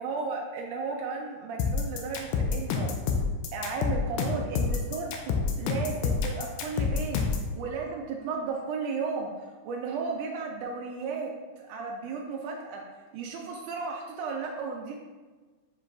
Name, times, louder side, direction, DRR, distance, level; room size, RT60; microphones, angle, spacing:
voice 1, 0.0-2.9 3.5-7.2 7.5-11.3 11.6-12.8 13.1-15.0, right 4 dB, 80° right, 0 dB, 1.8 m, -34 dB
sound 1, 1.6-7.5, left 5 dB, 90° left, 2.3 m, -27 dB
6.8 x 2.5 x 3.2 m, 1.3 s
omnidirectional pair, 3.9 m